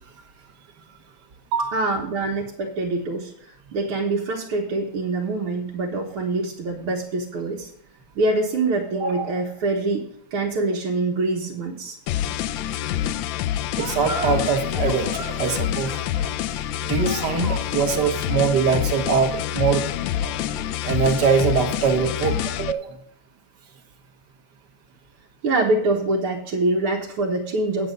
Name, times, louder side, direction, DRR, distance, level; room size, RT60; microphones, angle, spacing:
voice 1, 1.7-7.7 8.2-12.0 12.2-12.3 25.4-27.9, right 2 dB, 80° right, -3 dB, 2.0 m, -25 dB
sound 1, 12.1-22.7, left 11 dB, 75° left, 1.2 m, -27 dB
sound 2, 13.7-20.5, right 2 dB, 30° right, 1.5 m, -37 dB
voice 2, 13.8-15.9 16.8-19.9 20.8-23.0, right 6 dB, 55° right, 6 dB, 1.7 m, -22 dB
9.0 x 8.0 x 5.2 m, 0.66 s
omnidirectional pair, 2.4 m